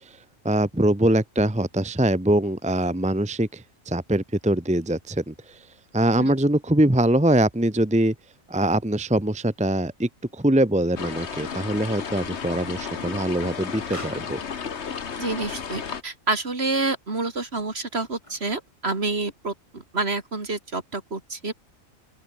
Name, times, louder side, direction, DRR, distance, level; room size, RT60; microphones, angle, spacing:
voice 1, 0.4-5.3 5.9-8.1 8.5-14.4, right 1 dB, 5° right, 1.1 m, -23 dB
sound 1, 10.9-16.0, left 6 dB, 55° left, 1.5 m, -33 dB
voice 2, 15.2-21.5, right 3 dB, 50° right, 3.0 m, -28 dB
Explosion, 17.0-18.7, left 1 dB, 25° left, 4.8 m, -50 dB
open air
omnidirectional pair, 1.4 m